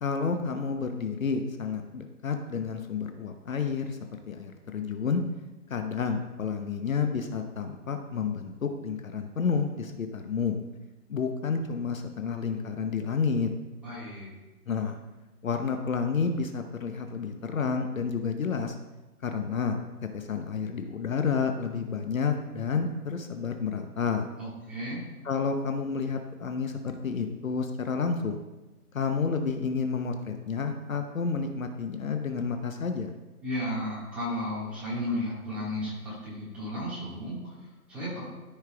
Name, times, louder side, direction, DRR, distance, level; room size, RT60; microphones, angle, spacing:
voice 1, 0.0-4.0 4.3-5.2 5.7-10.6 11.1-13.5 14.7-15.0 15.4-18.8 19.2-19.8 20.1-24.3 25.2-28.4 28.9-33.1, left 5 dB, 60° left, 6 dB, 0.8 m, -30 dB
voice 2, 13.8-14.3 24.4-25.1 33.4-38.2, left 1 dB, 5° right, -12 dB, 1.7 m, -34 dB
13.0 x 5.7 x 2.3 m, 1.1 s
hypercardioid pair, 165°, 45 cm